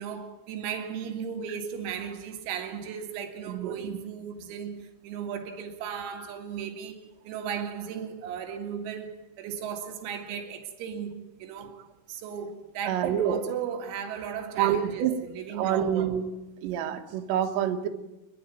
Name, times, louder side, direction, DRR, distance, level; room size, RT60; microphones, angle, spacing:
voice 1, 0.0-16.2, right 7 dB, 90° right, 4.8 m, -36 dB
voice 2, 3.5-4.0 12.9-13.4 14.6-15.2 15.5-16.2 16.6-17.9, right 10 dB, 65° right, 3.4 m, -27 dB
27.0 x 11.5 x 9.3 m
omnidirectional pair, 6.0 m